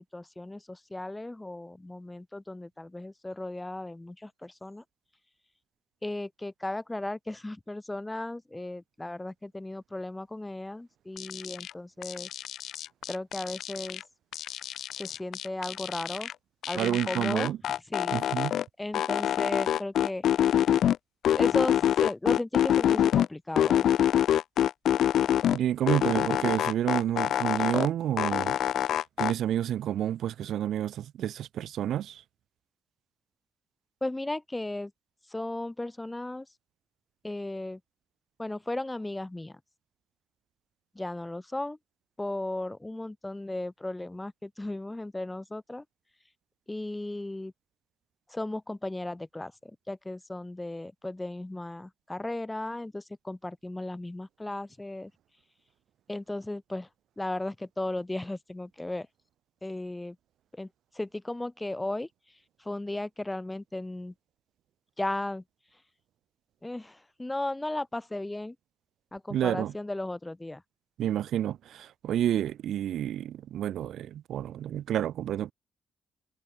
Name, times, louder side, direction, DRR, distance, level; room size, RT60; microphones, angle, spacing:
voice 1, 0.0-4.8 6.0-12.3 13.1-14.0 15.0-16.3 16.6-17.5 17.9-18.1 18.8-20.6 21.3-23.9 34.0-34.9 35.3-36.5 37.2-37.8 38.4-39.6 40.9-41.8 42.2-45.8 46.7-47.5 48.3-55.1 56.1-56.9 57.2-59.1 59.6-60.2 60.5-60.7 60.9-62.1 62.6-64.1 65.0-65.4 66.6-68.5 69.1-70.6, left 2 dB, 10° left, 1.6 m, -35 dB
sound 1, 11.2-11.7 12.0-14.0 14.3-16.3 16.6-18.6 18.9-21.0 21.2-23.3 23.6-25.6 25.9-27.9 28.2-29.3, left 10 dB, 70° left, 0.7 m, -26 dB
voice 2, 16.7-17.6 18.1-18.5 25.5-28.6 29.2-32.2 69.3-69.7 71.0-75.5, right 11 dB, 75° right, 1.4 m, -29 dB
cardioid pair, 90°, 0 cm